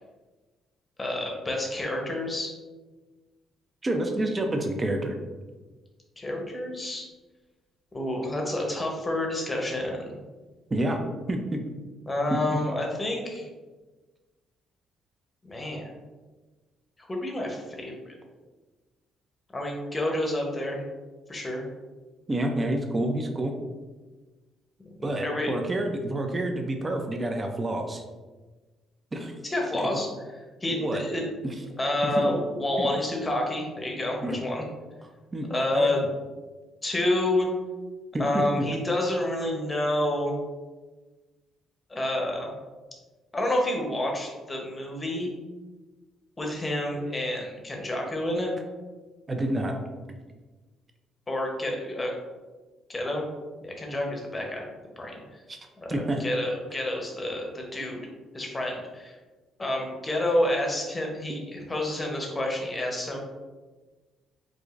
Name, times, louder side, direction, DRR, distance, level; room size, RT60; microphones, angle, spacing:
voice 1, 1.0-2.5 6.2-7.0 7.9-10.2 12.1-13.5 15.4-15.9 17.1-18.2 19.5-20.8 21.3-21.6 25.0-25.5 29.4-30.4 30.6-31.3 31.8-34.6 35.5-36.0 36.8-37.5 38.2-40.3 41.9-42.5 43.3-45.3 46.4-48.5 51.3-52.1 52.9-53.3 53.6-54.7 55.0-55.1 55.8-58.0 58.3-59.2 59.6-63.2, left 1 dB, 20° left, 0 dB, 0.8 m, -29 dB
voice 2, 3.8-5.1 10.7-11.0 11.3-11.6 12.3-12.4 22.3-23.5 25.0-28.0 29.1-29.3 29.8-29.9 30.7-31.0 31.4-31.5 32.0-32.3 32.8-32.9 34.2-34.4 35.3-35.5 35.7-36.0 38.1-38.4 49.3-49.8 55.5-55.6 55.9-56.2, right 1 dB, 20° right, 3 dB, 0.4 m, -28 dB
4.7 x 2.5 x 2.4 m, 1.3 s
cardioid pair, 120°, 0 cm